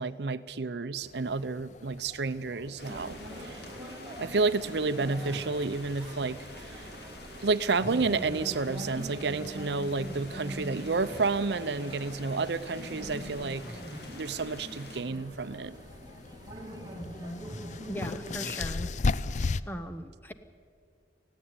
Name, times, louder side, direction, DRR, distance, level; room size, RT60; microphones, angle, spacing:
voice 1, 0.0-3.6 4.2-6.9 7.4-13.7 14.2-15.7, right 4 dB, 65° right, 14 dB, 0.6 m, -30 dB
sound 1, 1.0-19.6, left 3 dB, 40° left, 0.5 m, -40 dB
sound 2, 2.8-15.0, left 2 dB, 60° left, 2.8 m, -49 dB
sound 3, 2.8-18.5, equal, 20° right, 2.1 m, -43 dB
voice 2, 17.9-18.9 19.6-20.3, equal, 10° left, 9 dB, 0.9 m, -38 dB
19.0 x 15.0 x 9.7 m, 2.3 s
head